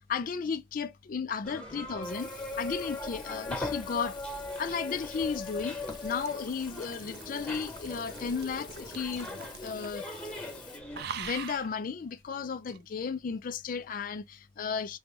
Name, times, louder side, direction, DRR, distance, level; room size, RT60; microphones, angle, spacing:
voice 1, 0.1-4.2 4.6-5.8 6.0-10.1 11.1-15.0, left 6 dB, 45° left, 0.4 m, -34 dB
sound 1, 1.4-11.0, left 2 dB, 5° left, 1.4 m, -39 dB
Water tap faucet / Sink (filling or washing), 2.0-10.8, left 6 dB, 25° left, 0.9 m, -51 dB
sound 2, 4.3-10.1 10.3-10.6 10.9-11.7 12.7-12.8, right 6 dB, 55° right, 0.5 m, -45 dB
5.2 x 2.2 x 2.9 m
head